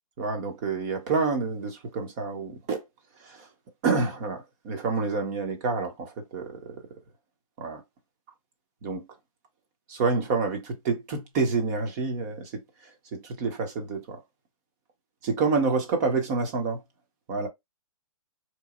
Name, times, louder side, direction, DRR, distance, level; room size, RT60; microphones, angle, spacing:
voice 1, 0.2-2.8 3.2-3.5 3.8-6.8 7.6-7.8 8.8-9.0 9.9-12.6 13.1-14.2 15.2-16.8 17.3-17.5, right 4 dB, 30° right, 1.0 m, -28 dB
3.9 x 3.1 x 2.5 m
hypercardioid pair, 155°, 18 cm